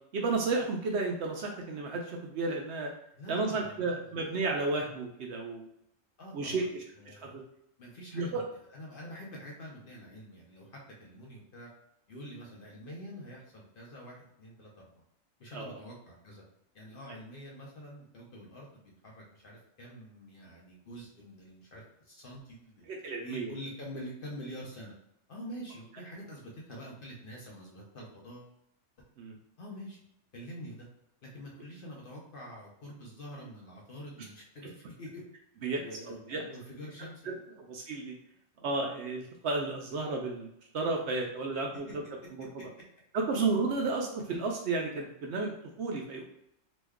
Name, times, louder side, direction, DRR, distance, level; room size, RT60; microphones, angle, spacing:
voice 1, 0.1-2.9 3.3-5.7 6.3-6.8 7.1-7.4 8.1-8.4 15.5-15.8 22.9-23.5 29.2-29.4 35.6-36.4 37.3-37.4 37.6-38.1 38.6-40.5 40.7-41.9 43.1-46.2, right 3 dB, 65° right, 0 dB, 0.7 m, -32 dB
voice 2, 3.2-4.3 6.2-7.3 7.8-11.7 12.1-15.0 15.4-16.4 16.7-22.9 23.2-24.9 25.3-28.6 29.6-30.0 30.3-30.9 31.2-35.2 35.7-37.6 41.2-41.3 43.7-43.9, equal, 50° left, -3 dB, 0.7 m, -46 dB
3.0 x 2.2 x 3.4 m, 0.76 s
omnidirectional pair, 1.3 m